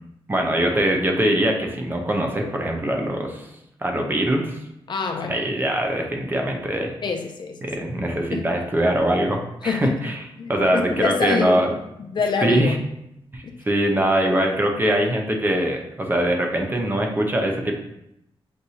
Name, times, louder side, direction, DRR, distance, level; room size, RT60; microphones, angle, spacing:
voice 1, 0.3-3.5 3.8-4.6 5.3-6.9 7.6-10.2 10.5-11.7 12.4-12.8 13.3-17.7, right 1 dB, 20° right, 2 dB, 0.6 m, -22 dB
voice 2, 4.9-5.4 7.0-7.6 8.3-8.5 9.6-10.0 10.4-11.6 12.0-12.7 13.4-13.6, left 5 dB, 50° left, 4 dB, 0.4 m, -26 dB
6.2 x 2.6 x 2.7 m, 0.82 s
wide cardioid pair, 120°, 10 cm